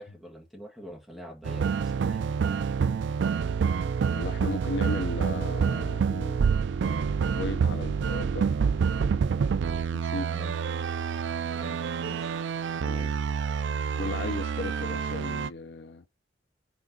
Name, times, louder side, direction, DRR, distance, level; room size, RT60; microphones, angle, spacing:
voice 1, 0.0-2.6 10.3-10.6 11.5-12.4, equal, ahead, 2.1 m, -46 dB
sound 1, 1.4-15.5, right 6 dB, 65° right, 0.3 m, -27 dB
voice 2, 4.1-6.6 7.3-8.5 9.9-10.3 12.8-13.1 13.9-16.0, left 2 dB, 60° left, 0.5 m, -36 dB
6.1 x 3.8 x 5.4 m
head